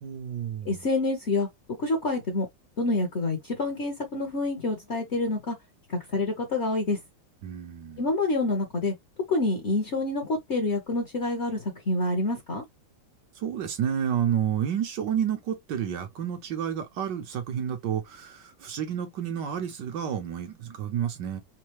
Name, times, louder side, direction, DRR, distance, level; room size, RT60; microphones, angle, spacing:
voice 1, 0.0-0.8 7.4-8.1 13.4-21.4, right 9 dB, 70° right, 1.6 m, -30 dB
voice 2, 0.6-1.5 1.8-2.5 2.8-5.6 5.9-7.0 8.0-8.9 9.3-12.6, left 2 dB, 40° left, 1.2 m, -27 dB
4.5 x 2.2 x 3.0 m
omnidirectional pair, 2.0 m